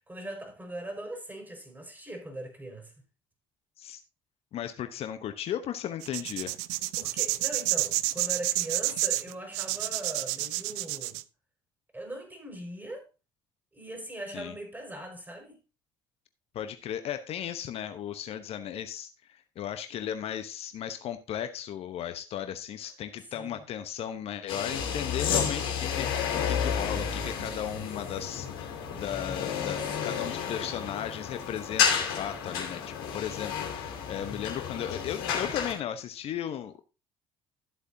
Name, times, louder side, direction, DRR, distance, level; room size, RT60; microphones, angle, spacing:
voice 1, 0.1-2.9 6.8-11.2 11.9-13.1 13.7-15.6 23.3-23.6 25.5-25.7 29.8-30.2, right 1 dB, 15° right, 5.3 m, -40 dB
voice 2, 4.5-6.5 14.3-14.6 16.5-36.8, left 10 dB, 55° left, 1.0 m, -36 dB
sound 1, 6.0-11.2, right 19 dB, 70° right, 0.5 m, -29 dB
sound 2, 24.5-35.7, left 7 dB, 80° left, 2.9 m, -31 dB
13.5 x 8.1 x 2.7 m
hypercardioid pair, 55°, 12 cm